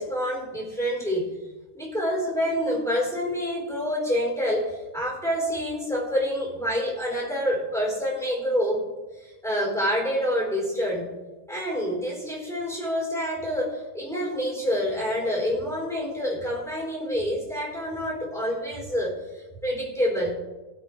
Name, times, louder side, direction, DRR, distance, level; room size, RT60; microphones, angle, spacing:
voice 1, 0.0-1.3 1.7-8.9 9.1-11.1 11.5-20.3, equal, ahead, -4 dB, 4.1 m, -27 dB
20.5 x 8.0 x 3.3 m, 1.2 s
omnidirectional pair, 2.3 m